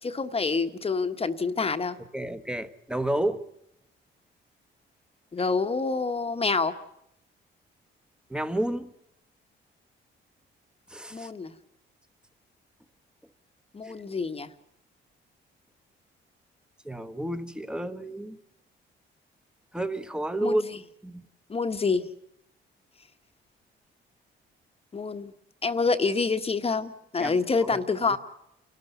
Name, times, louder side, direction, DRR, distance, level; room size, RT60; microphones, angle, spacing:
voice 1, 0.0-2.0 5.3-6.7 11.1-11.5 13.7-14.5 20.4-20.6 21.5-22.1 24.9-25.3 25.6-28.2, left 4 dB, 30° left, 1.3 m, -27 dB
voice 2, 2.1-3.4 8.3-8.9 10.9-11.3 13.8-14.0 16.8-18.4 19.7-20.6 21.0-21.2 27.2-27.4 27.6-28.2, right 1 dB, 5° right, 1.3 m, -31 dB
29.0 x 13.0 x 8.2 m
cardioid pair, 90°, 20 cm